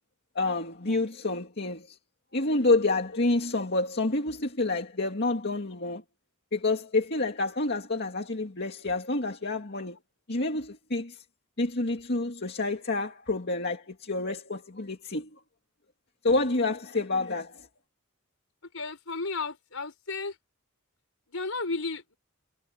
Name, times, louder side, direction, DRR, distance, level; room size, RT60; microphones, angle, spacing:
voice 1, 0.4-2.0 2.3-6.0 6.5-10.0 10.3-11.2 11.6-15.4 16.2-17.7, left 2 dB, 50° left, 2.2 m, -28 dB
voice 2, 18.7-20.4 21.3-22.2, left 3 dB, 65° left, 5.5 m, -33 dB
head